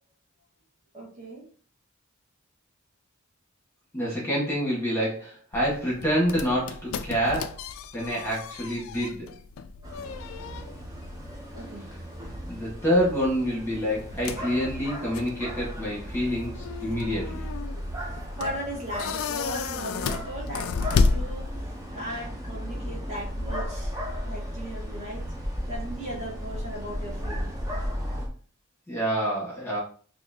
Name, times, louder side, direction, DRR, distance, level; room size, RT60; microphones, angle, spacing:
voice 1, 0.9-1.4 11.5-11.9 18.1-21.6 21.9-24.0 24.2-25.3 25.7-27.5, right 1 dB, 35° right, -5 dB, 1.6 m, -37 dB
voice 2, 3.9-7.6 7.9-9.3 12.5-17.5 28.9-29.8, equal, 10° left, -5 dB, 1.4 m, -27 dB
sound 1, 5.5-21.9, left 4 dB, 80° left, 0.3 m, -33 dB
sound 2, 9.8-28.3, equal, 15° right, 0.7 m, -36 dB
4.1 x 2.8 x 2.7 m, 0.42 s
head